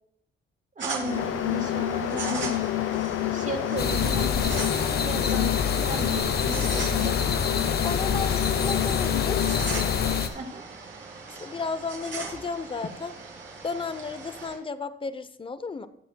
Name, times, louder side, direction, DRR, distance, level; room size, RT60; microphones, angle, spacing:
voice 1, 0.8-2.5 3.3-7.2 10.3-10.6, right 2 dB, 40° right, 3 dB, 2.1 m, -35 dB
sound 1, 0.8-14.5, right 4 dB, 60° right, 3.2 m, -39 dB
sound 2, 1.0-10.3, left 13 dB, 80° left, 0.5 m, -28 dB
sound 3, 3.8-10.3, left 6 dB, 50° left, 1.0 m, -27 dB
voice 2, 7.8-9.4 11.4-13.2 13.6-15.9, left 4 dB, 25° left, 13 dB, 0.6 m, -33 dB
19.0 x 7.4 x 2.2 m, 0.75 s
cardioid pair, 110°, 21 cm